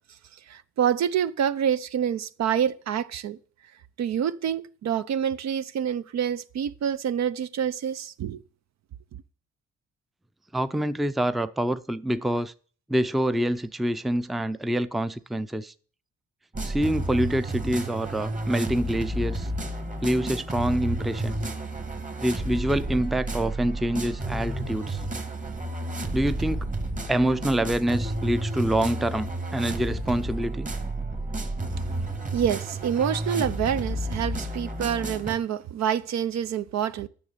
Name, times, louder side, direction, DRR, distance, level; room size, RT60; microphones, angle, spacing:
voice 1, 0.5-3.4 4.0-8.4 32.3-37.1, right 9 dB, 60° right, 0.7 m, -27 dB
voice 2, 10.5-12.5 12.9-15.7 16.6-19.5 20.0-21.3 22.2-25.0 26.1-26.7 27.1-30.7, right 1 dB, ahead, 0.5 m, -26 dB
sound 1, 16.5-35.4, right 1 dB, 25° right, 1.7 m, -31 dB
9.5 x 6.5 x 8.4 m
cardioid pair, 90°, 30 cm